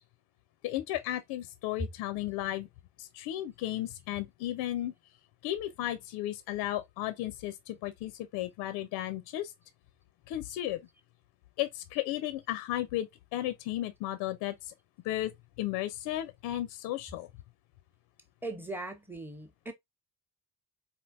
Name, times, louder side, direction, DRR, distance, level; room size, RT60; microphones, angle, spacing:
voice 1, 0.6-2.7 3.0-4.9 5.4-9.5 10.3-10.8 11.6-14.7 15.0-15.3 15.6-17.3, left 14 dB, 55° left, 0.5 m, -34 dB
voice 2, 18.4-19.7, right 1 dB, 5° right, 0.9 m, -38 dB
4.2 x 2.6 x 2.5 m
figure-of-eight pair, 40°, 46 cm